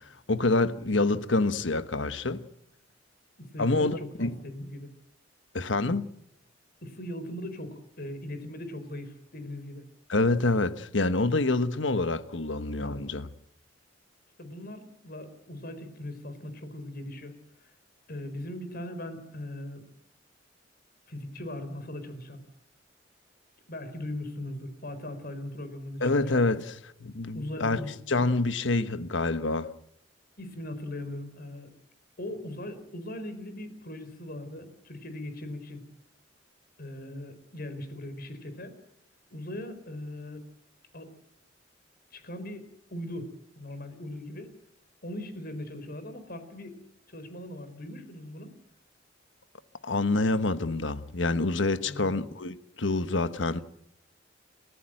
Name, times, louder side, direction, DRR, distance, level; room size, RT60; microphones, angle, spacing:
voice 1, 0.3-2.4 3.6-4.3 5.5-6.0 10.1-13.3 26.0-27.8 28.1-29.7 49.8-53.6, left 2 dB, 80° left, 1.3 m, -27 dB
voice 2, 3.4-4.9 6.8-9.8 14.4-17.7 18.1-19.9 21.1-22.4 23.7-26.5 27.3-28.0 30.4-31.7 32.2-35.8 36.8-38.8 39.3-40.4 40.9-41.1 42.1-43.3 43.6-44.5 45.0-46.8 47.1-48.5 51.8-52.2, left 1 dB, 55° left, 4.5 m, -39 dB
30.0 x 14.5 x 7.7 m
head